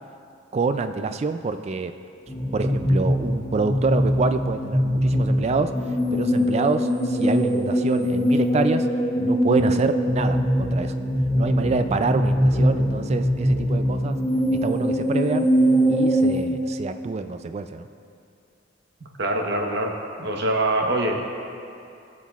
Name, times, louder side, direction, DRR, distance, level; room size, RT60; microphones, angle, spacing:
voice 1, 0.5-1.9 2.5-5.7 6.1-8.9 9.2-10.9 11.3-14.2 14.6-15.5 15.9-17.9, right 4 dB, 35° right, 9 dB, 0.3 m, -26 dB
sound 1, 2.3-16.4, equal, 25° left, 2.1 m, -22 dB
voice 2, 19.2-19.9 20.2-21.2, right 1 dB, 60° right, 1 dB, 1.0 m, -23 dB
19.5 x 7.3 x 2.4 m, 2.5 s
head